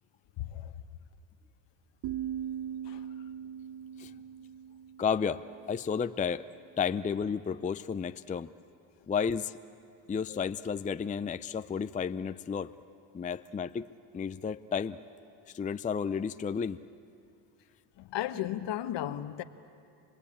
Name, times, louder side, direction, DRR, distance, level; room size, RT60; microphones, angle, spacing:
sound 1, 2.0-5.9, right 10 dB, 50° right, 0.9 m, -40 dB
voice 1, 5.0-6.5 6.8-8.5 9.1-9.5 10.1-12.7 13.1-13.9 14.1-15.0 15.5-16.8, left 6 dB, 15° left, 0.5 m, -32 dB
voice 2, 18.0-19.4, left 12 dB, 65° left, 1.2 m, -35 dB
27.0 x 19.0 x 8.6 m
supercardioid pair, 80°, 46 cm